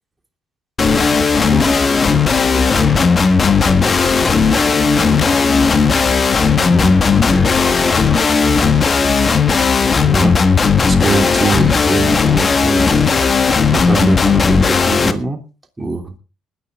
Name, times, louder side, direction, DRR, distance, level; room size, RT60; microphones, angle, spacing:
sound 1, 0.8-15.1, left 5 dB, 35° left, 1.5 m, -14 dB
voice 1, 1.5-4.2 4.5-5.8 6.3-9.0, left 1 dB, 5° left, 5 dB, 2.9 m, -29 dB
voice 2, 6.6-6.9 9.9-13.0 13.7-15.4 15.8-16.1, right 3 dB, 15° right, 3 dB, 3.2 m, -22 dB
20.5 x 10.0 x 3.7 m, 0.34 s
supercardioid pair, 75°, 0 cm